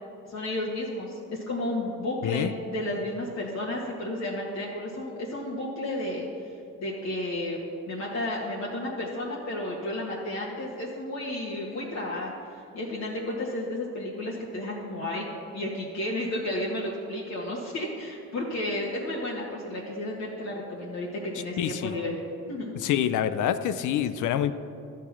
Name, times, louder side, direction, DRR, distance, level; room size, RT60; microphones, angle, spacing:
voice 1, 0.3-7.6 7.9-12.3 12.7-15.3 15.5-22.2 22.5-22.7, left 1 dB, 60° left, -4 dB, 1.7 m, -32 dB
voice 2, 21.6-21.9 22.8-24.5, left 10 dB, 80° left, 12 dB, 0.6 m, -26 dB
12.0 x 6.5 x 5.9 m, 2.4 s
cardioid pair, 90°, 30 cm